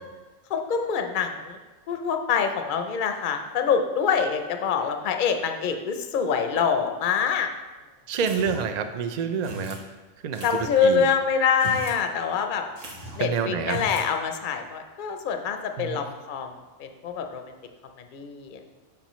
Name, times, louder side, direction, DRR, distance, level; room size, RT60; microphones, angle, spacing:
voice 1, 0.5-1.6 1.9-7.5 10.4-12.6 13.2-16.5 16.8-17.4 18.1-18.6, left 6 dB, 50° left, 5 dB, 0.7 m, -25 dB
voice 2, 8.1-9.8 10.2-11.1 13.2-13.8 15.8-16.0, right 6 dB, 55° right, 8 dB, 0.4 m, -28 dB
sound 1, 8.2-8.8 9.4-9.8 10.3-10.8 11.5-12.0 12.3-12.4 12.8-13.3 13.6-14.1, right 1 dB, 80° right, 1.6 m, -38 dB
8.5 x 5.8 x 3.1 m, 1.2 s
omnidirectional pair, 1.3 m